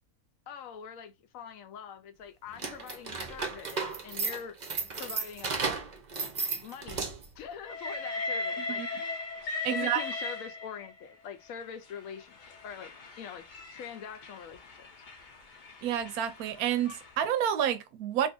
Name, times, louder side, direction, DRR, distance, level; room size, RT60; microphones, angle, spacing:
voice 1, 0.5-4.6 5.0-5.6 6.6-9.2 9.7-12.9 13.2-14.9, left 8 dB, 70° left, 0.9 m, -44 dB
sound 1, 2.5-7.4, right 4 dB, 45° right, 0.6 m, -34 dB
Train, 7.6-11.0 11.9-17.1, left 3 dB, 55° left, 0.5 m, -38 dB
voice 2, 9.6-10.0 15.8-18.3, right 10 dB, 80° right, 1.1 m, -29 dB
2.6 x 2.6 x 3.6 m
omnidirectional pair, 1.5 m